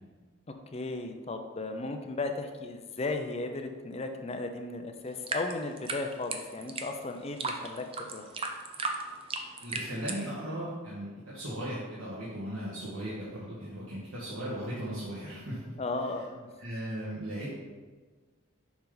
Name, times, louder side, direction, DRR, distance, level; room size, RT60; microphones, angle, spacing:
voice 1, 0.7-8.2 15.8-16.5, left 2 dB, 30° left, 5 dB, 0.5 m, -35 dB
sound 1, 5.1-10.2, right 4 dB, 25° right, 0.5 m, -36 dB
voice 2, 9.3-15.7 16.6-17.5, right 1 dB, 90° right, -9 dB, 1.7 m, -37 dB
7.1 x 5.3 x 3.9 m, 1.4 s
head